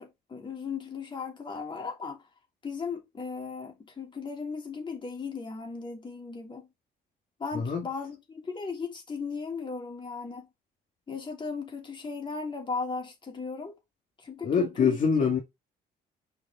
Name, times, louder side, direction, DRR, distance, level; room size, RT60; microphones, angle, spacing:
voice 1, 0.0-2.2 2.6-6.7 7.4-10.5 11.1-13.8 14.2-15.0, left 4 dB, 30° left, 2.9 m, -36 dB
voice 2, 7.5-7.8 14.4-15.4, left 6 dB, 50° left, 1.7 m, -24 dB
6.6 x 4.8 x 3.7 m
cardioid pair, 110°, 17 cm